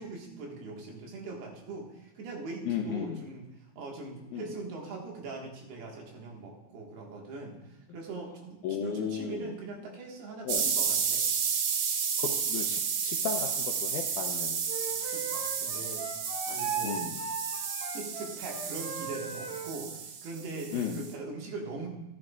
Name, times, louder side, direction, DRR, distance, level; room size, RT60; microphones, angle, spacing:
voice 1, 0.0-3.5 3.8-11.2 14.9-16.0 16.5-17.0 17.9-21.9, right 3 dB, 85° right, 0 dB, 3.8 m, -41 dB
voice 2, 2.7-3.2 4.3-4.5 8.6-9.5 10.4-10.7 12.2-14.6 16.8-17.2 20.7-21.0, left 7 dB, 85° left, 2 dB, 1.7 m, -35 dB
sound 1, 10.5-21.1, right 6 dB, 70° right, 2.1 m, -32 dB
Wind instrument woodwind instrument, 14.7-19.7, right 5 dB, 50° right, 3.2 m, -38 dB
14.5 x 11.0 x 2.4 m, 1.0 s
omnidirectional pair, 4.4 m